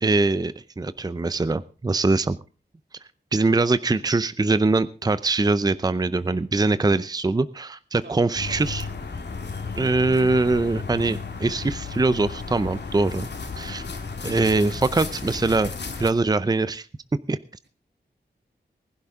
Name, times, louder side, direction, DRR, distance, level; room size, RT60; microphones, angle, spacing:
voice 1, 0.0-2.4 3.3-8.8 9.8-13.3 13.6-13.9 14.2-15.7 16.0-16.9 17.3-17.4, right 3 dB, 20° right, 14 dB, 0.6 m, -22 dB
voice 2, 6.1-6.9 8.0-8.7 13.5-13.8, right 4 dB, 85° right, 4 dB, 2.9 m, -48 dB
sound 1, 8.3-16.1, left 4 dB, 75° left, 2.1 m, -34 dB
20.0 x 11.5 x 3.6 m, 0.33 s
wide cardioid pair, 90°, 18 cm